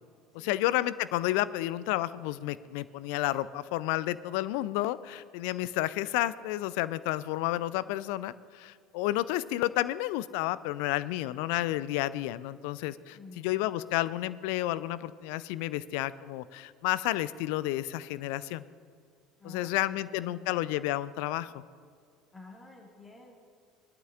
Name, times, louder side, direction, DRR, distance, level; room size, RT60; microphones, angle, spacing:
voice 1, 0.3-18.6 19.4-21.5, left 15 dB, 65° left, 17 dB, 0.4 m, -31 dB
voice 2, 13.0-13.7 19.4-20.5 22.3-23.3, left 2 dB, 20° left, -3 dB, 1.9 m, -50 dB
20.5 x 12.0 x 2.5 m, 2.1 s
figure-of-eight pair, 65°, 0 cm